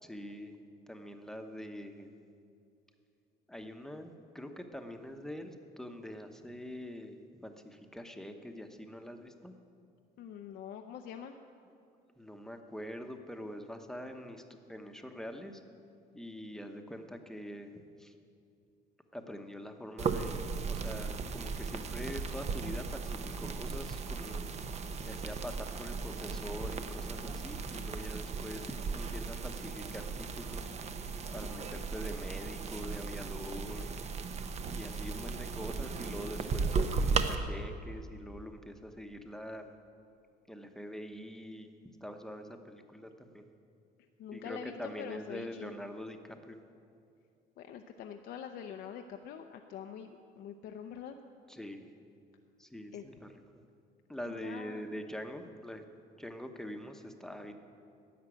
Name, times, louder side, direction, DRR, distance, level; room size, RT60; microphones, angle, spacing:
voice 1, 0.0-0.5 0.9-2.2 3.5-9.5 12.2-14.4 14.7-15.6 16.1-18.1 19.1-24.5 25.1-30.7 31.3-33.9 34.7-39.7 40.5-43.5 44.3-46.6 51.5-51.9 52.6-53.3 54.1-55.8 56.2-57.5, equal, 5° left, 5 dB, 1.0 m, -44 dB
voice 2, 10.2-11.4 28.4-28.7 31.5-31.8 35.1-35.6 44.2-45.7 47.6-51.2 52.9-53.0 54.3-54.8, left 8 dB, 70° left, 5 dB, 0.7 m, -45 dB
sound 1, 20.0-37.4, right 4 dB, 40° right, 0.8 m, -36 dB
11.0 x 7.4 x 9.7 m, 2.5 s
cardioid pair, 110°, 17 cm